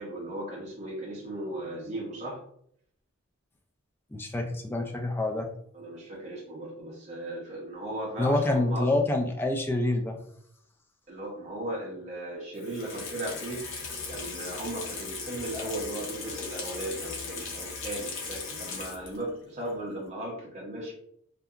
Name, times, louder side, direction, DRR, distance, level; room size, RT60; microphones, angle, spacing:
voice 1, 0.0-2.4 5.7-8.9 11.1-13.7 14.1-20.9, right 1 dB, 35° right, -4 dB, 0.6 m, -36 dB
voice 2, 4.1-5.5 8.2-10.2, left 2 dB, 10° left, 3 dB, 0.3 m, -27 dB
Water tap faucet / Sink (filling or washing), 12.6-19.3 19.7-19.8, left 4 dB, 65° left, 0.7 m, -38 dB
2.8 x 2.2 x 2.3 m, 0.68 s
head